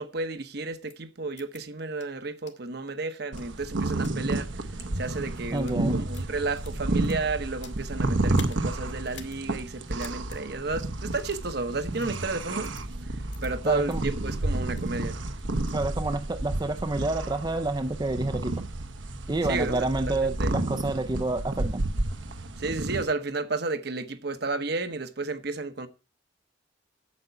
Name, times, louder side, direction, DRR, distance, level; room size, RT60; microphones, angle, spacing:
voice 1, 0.0-4.5 5.0-12.7 13.4-15.2 19.4-20.5 22.6-25.9, right 3 dB, 55° right, 1.0 m, -32 dB
sound 1, 0.9-1.0 1.4-1.6 2.0-2.1 2.5-2.6 3.1-4.1 4.7-4.9 5.4-5.8 6.1-7.8 8.3-8.6 9.0-9.4 9.7-9.8 10.0-10.4 11.2-11.5 12.0-12.1 12.6-12.8 13.3-13.5 13.9-14.0 14.4-14.9 15.3-15.8, left 8 dB, 65° left, 1.7 m, -48 dB
sound 2, 3.3-23.0, right 2 dB, 80° right, 1.2 m, -31 dB
voice 2, 5.5-6.0 13.6-14.0 15.7-18.5 19.3-21.8, right 2 dB, 20° right, 0.5 m, -28 dB
8.7 x 8.0 x 5.6 m
head